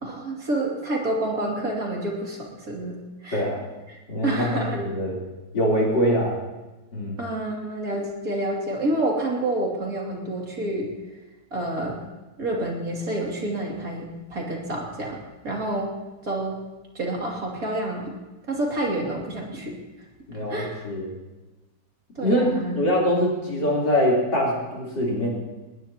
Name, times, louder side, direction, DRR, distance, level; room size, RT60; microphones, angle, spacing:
voice 1, 0.0-3.4 3.9-4.8 7.2-10.9 11.5-12.0 12.4-15.9 16.2-16.6 16.9-18.2 18.5-19.8 20.5-20.8 22.1-22.8, right 1 dB, 50° right, -2 dB, 3.2 m, -28 dB
voice 2, 3.3-3.6 4.1-5.2 5.5-6.3 6.9-7.2 20.3-21.2 22.2-25.3, equal, 70° left, -4 dB, 4.5 m, -23 dB
21.0 x 19.0 x 2.9 m, 1.1 s
omnidirectional pair, 2.0 m